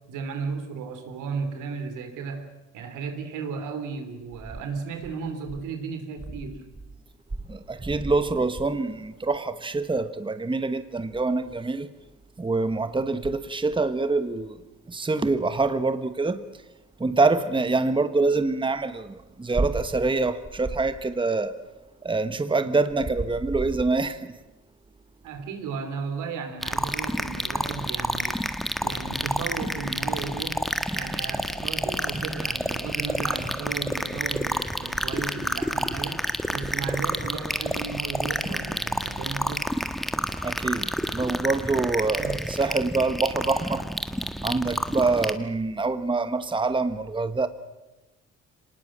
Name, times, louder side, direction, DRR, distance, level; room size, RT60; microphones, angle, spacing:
voice 1, 0.1-6.6 25.2-28.4 28.8-30.6 30.9-36.2 36.5-39.7 42.1-42.4, right 5 dB, 90° right, 3.4 m, -34 dB
voice 2, 7.5-11.9 12.4-14.6 14.9-16.4 17.0-21.6 22.0-24.3 40.4-43.9 44.4-47.5, right 3 dB, 15° right, 1.2 m, -25 dB
sound 1, 26.6-45.3, equal, ahead, 1.6 m, -29 dB
25.5 x 19.5 x 7.5 m
cardioid pair, 90°, 30 cm